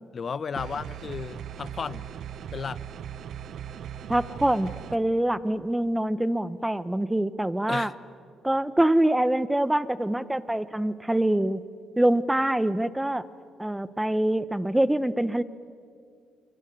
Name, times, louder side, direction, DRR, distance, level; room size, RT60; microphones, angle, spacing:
voice 1, 0.1-2.0 2.5-2.8 7.7-7.9, left 5 dB, 45° left, 17 dB, 0.9 m, -33 dB
sound 1, 0.6-5.0, right 9 dB, 70° right, 0.9 m, -38 dB
voice 2, 4.1-7.9 8.4-11.6 12.0-13.3 13.6-15.4, right 1 dB, 10° right, 16 dB, 1.0 m, -25 dB
27.0 x 23.0 x 9.5 m, 2.3 s
cardioid pair, 90°, 0 cm